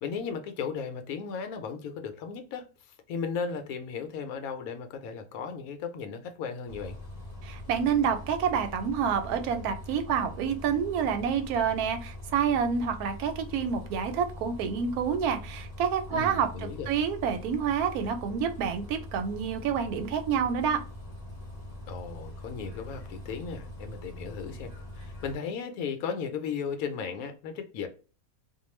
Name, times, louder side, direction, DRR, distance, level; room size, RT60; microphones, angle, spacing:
voice 1, 0.0-2.7 3.1-7.0 16.1-16.9 21.9-27.9, left 6 dB, 80° left, 1.0 m, -36 dB
Bus, 6.7-25.4, left 1 dB, 40° left, 0.5 m, -43 dB
voice 2, 7.4-16.5 16.9-20.8, right 7 dB, 90° right, 1.1 m, -28 dB
2.4 x 2.3 x 3.0 m
omnidirectional pair, 1.5 m